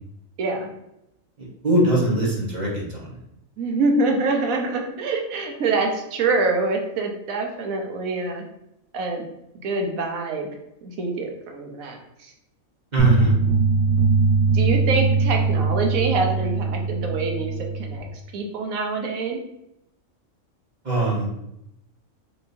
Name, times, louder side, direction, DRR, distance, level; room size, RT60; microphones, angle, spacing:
voice 1, 0.4-0.7 3.6-8.4 8.9-9.2 9.6-10.5 10.8-12.3 14.5-18.1 18.3-19.4, right 3 dB, 90° right, 2 dB, 1.2 m, -25 dB
voice 2, 1.4-3.2 12.9-13.3 20.8-21.3, right 2 dB, 35° right, -5 dB, 1.2 m, -21 dB
sound 1, 13.0-18.0, right 4 dB, 60° right, 1.3 m, -21 dB
4.8 x 3.2 x 2.6 m, 0.82 s
omnidirectional pair, 1.4 m